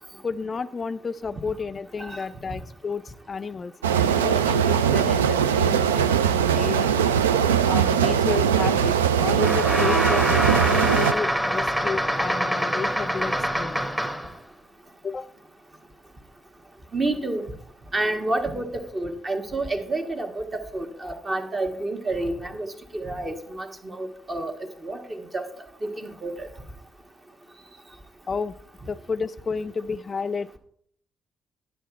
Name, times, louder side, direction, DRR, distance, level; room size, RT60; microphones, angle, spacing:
voice 1, 0.2-6.9 7.6-13.9 15.0-15.3 28.3-28.5 28.9-30.6, left 5 dB, 40° left, 12 dB, 0.3 m, -31 dB
sound 1, 3.8-11.1, right 8 dB, 80° right, 0.3 m, -21 dB
sound 2, 9.4-14.4, equal, 10° right, 1.2 m, -25 dB
voice 2, 16.9-17.4 17.9-24.5 24.8-25.4 25.8-26.5, right 2 dB, 30° right, 5 dB, 1.3 m, -29 dB
10.0 x 7.2 x 4.6 m, 0.64 s
figure-of-eight pair, 45°, 0 cm